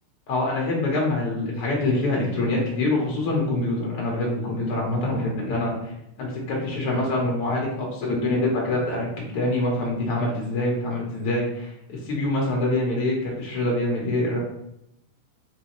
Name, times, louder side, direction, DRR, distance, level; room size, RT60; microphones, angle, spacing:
voice 1, 0.3-5.9 6.2-9.1 9.3-14.4, left 2 dB, 90° left, -3 dB, 1.2 m, -25 dB
5.4 x 3.1 x 3.0 m, 0.81 s
omnidirectional pair, 3.9 m